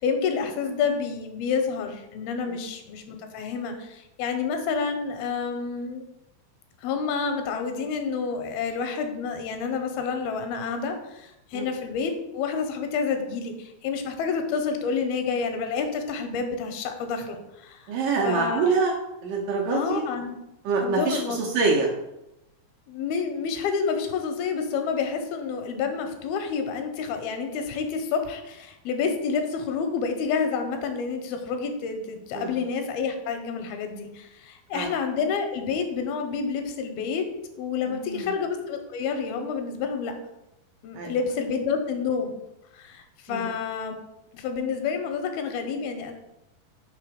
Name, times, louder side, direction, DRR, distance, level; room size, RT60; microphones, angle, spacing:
voice 1, 0.0-6.0 6.8-17.9 18.2-18.6 19.7-20.4 20.8-21.4 22.9-37.3 37.6-40.1 40.8-42.4 42.7-44.0 44.3-46.1, left 5 dB, 85° left, 6 dB, 2.5 m, -29 dB
voice 2, 17.9-18.9 19.2-20.0 20.7-21.9 32.4-32.5 34.7-34.9 37.9-38.3 40.9-41.1 43.3-43.5, right 4 dB, 75° right, -1 dB, 2.0 m, -25 dB
5.8 x 3.6 x 4.9 m, 0.91 s
omnidirectional pair, 4.4 m